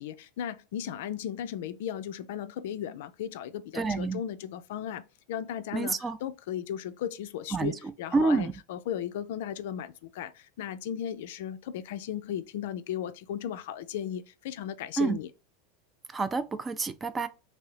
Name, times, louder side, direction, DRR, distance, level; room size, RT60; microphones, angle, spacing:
voice 1, 0.0-15.3, left 10 dB, 65° left, 0.3 m, -36 dB
voice 2, 3.7-4.2 5.7-6.2 7.5-7.7 8.1-8.5 15.0-15.2 16.1-17.3, right 4 dB, 20° right, 0.4 m, -28 dB
2.9 x 2.7 x 3.1 m
hypercardioid pair, 90°, 0 cm